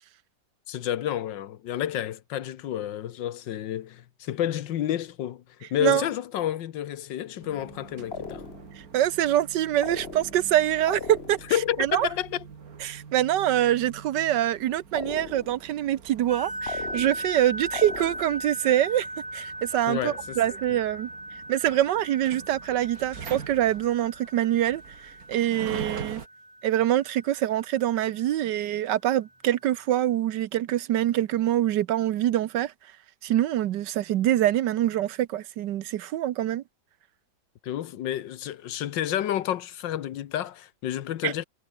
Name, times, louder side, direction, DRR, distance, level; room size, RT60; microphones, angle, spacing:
voice 1, 0.7-8.4 11.5-12.4 19.9-20.4 20.7-20.8 37.6-41.4, left 11 dB, 80° left, 1.6 m, -30 dB
sound 1, 7.4-26.3, right 6 dB, 55° right, 2.1 m, -44 dB
sound 2, 8.1-8.8 9.8-10.5 10.9-11.6 14.9-15.7 16.7-17.4 17.7-18.5, left 5 dB, 35° left, 1.8 m, -38 dB
voice 2, 8.9-11.4 11.8-12.1 12.8-19.1 19.3-21.1 21.5-24.8 25.3-26.2 26.6-32.7 33.2-36.6 41.2-41.3, right 12 dB, 75° right, 1.4 m, -25 dB
sound 3, 16.3-28.5, right 1 dB, 10° right, 4.6 m, -39 dB
omnidirectional pair, 2.0 m